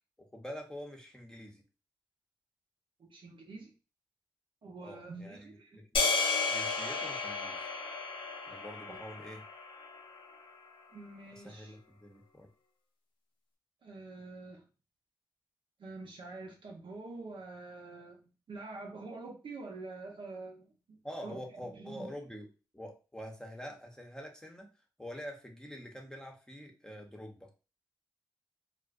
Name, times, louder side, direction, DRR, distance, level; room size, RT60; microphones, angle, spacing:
voice 1, 0.3-1.6 4.8-6.0 6.5-7.7 8.5-9.4 11.4-12.5 21.0-22.5 22.7-24.7 25.0-27.5, equal, 10° left, 1 dB, 0.7 m, -46 dB
voice 2, 3.0-3.7 4.6-5.8 8.9-9.0 10.9-11.8 13.8-14.6 15.8-20.7 21.2-22.1, right 3 dB, 70° right, 0 dB, 0.7 m, -46 dB
sound 1, 5.9-10.3, left 4 dB, 80° left, 0.6 m, -33 dB
2.5 x 2.1 x 2.4 m, 0.33 s
supercardioid pair, 45°, 9 cm